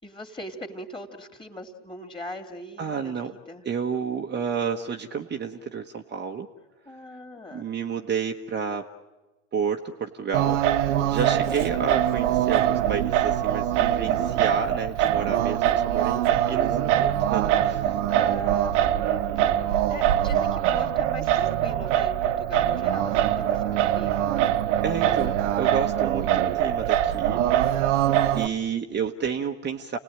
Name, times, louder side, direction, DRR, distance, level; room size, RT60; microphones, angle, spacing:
voice 1, 0.0-3.6 6.8-7.7 11.2-11.8 18.1-24.4 25.0-25.4 28.2-28.5, left 2 dB, 15° left, 5 dB, 3.1 m, -40 dB
voice 2, 2.8-3.3 3.6-6.5 7.5-8.8 9.5-18.0 19.0-19.6 24.8-27.4 27.9-28.0 28.3-30.0, right 6 dB, 30° right, 3 dB, 1.2 m, -30 dB
Singing, 10.3-28.5, right 11 dB, 70° right, 0.8 m, -23 dB
29.5 x 18.5 x 8.9 m, 1.2 s
hypercardioid pair, 75°, 38 cm